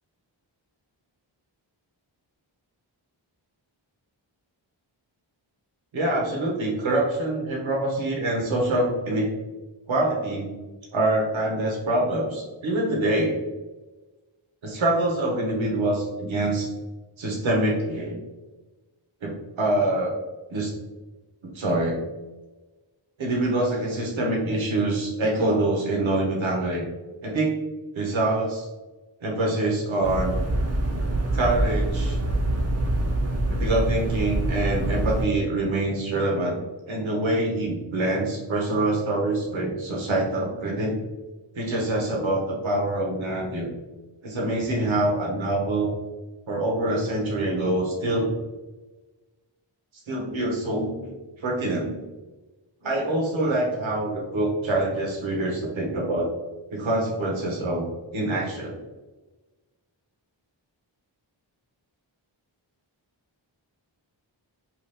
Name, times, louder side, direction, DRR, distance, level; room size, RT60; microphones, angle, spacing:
voice 1, 5.9-9.3 9.9-10.5 10.9-13.4 14.6-16.7 17.2-18.2 19.2-20.2 20.5-20.7 21.4-22.0 23.2-26.8 27.2-27.5 27.9-28.7 29.2-30.4 31.3-32.2 33.5-36.6 36.9-41.0 41.5-43.7 44.2-45.9 46.5-48.3 50.1-51.1 51.4-51.9 52.8-56.3 56.7-57.9 58.1-58.8, right 1 dB, 75° right, -1 dB, 0.8 m, -25 dB
sound 1, 30.0-35.3, right 1 dB, 35° right, 0.5 m, -25 dB
2.8 x 2.3 x 3.3 m, 1.2 s
wide cardioid pair, 50°, 47 cm